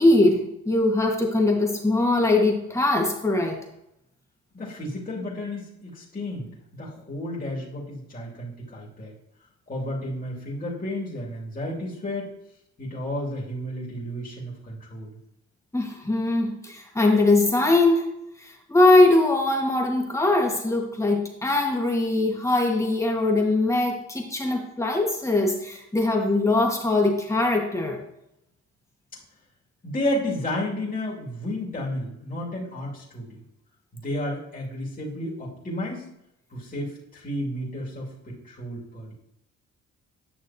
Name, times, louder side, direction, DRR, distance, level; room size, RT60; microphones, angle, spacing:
voice 1, 0.0-3.6 15.7-18.1 18.4-28.0, left 2 dB, 10° left, 0 dB, 1.7 m, -21 dB
voice 2, 4.5-6.5 6.7-9.1 9.7-12.3 12.8-15.2 29.8-33.4 33.9-36.1 36.5-39.1, left 1 dB, 30° left, -5 dB, 2.4 m, -32 dB
9.3 x 6.1 x 2.8 m, 0.82 s
cardioid pair, 90°, 30 cm